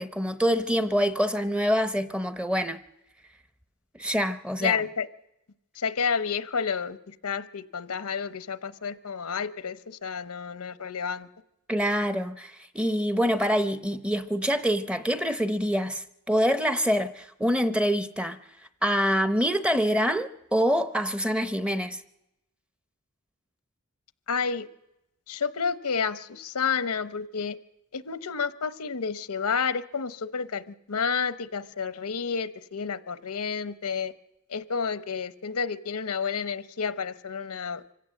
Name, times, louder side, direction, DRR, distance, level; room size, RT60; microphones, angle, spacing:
voice 1, 0.0-2.8 4.0-4.8 11.7-18.4 18.8-22.0, equal, 5° right, 0.7 m, -25 dB
voice 2, 4.6-5.1 5.8-11.3 24.3-24.7 25.3-27.6 27.9-34.1 34.5-37.8, left 6 dB, 85° left, 0.9 m, -30 dB
25.0 x 16.5 x 7.6 m
head